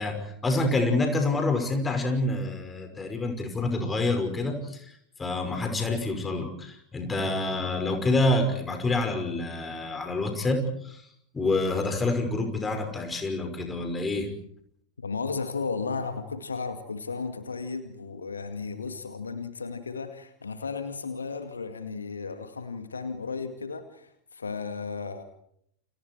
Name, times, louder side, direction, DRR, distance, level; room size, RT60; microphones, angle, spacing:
voice 1, 0.0-4.9 5.2-11.0 11.3-14.3, left 2 dB, 15° left, 5 dB, 5.8 m, -27 dB
voice 2, 15.0-25.2, left 4 dB, 75° left, 8 dB, 2.2 m, -34 dB
29.5 x 28.5 x 4.7 m, 0.68 s
figure-of-eight pair, 90°, 0 cm